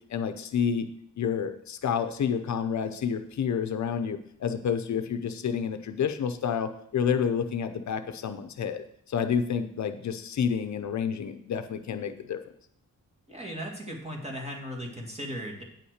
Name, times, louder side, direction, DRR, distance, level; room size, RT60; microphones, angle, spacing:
voice 1, 0.1-0.9 1.2-12.4, left 7 dB, 65° left, 8 dB, 0.7 m, -29 dB
voice 2, 13.3-15.6, equal, 20° right, 0 dB, 1.9 m, -37 dB
8.8 x 5.8 x 6.5 m, 0.71 s
wide cardioid pair, 155°, 31 cm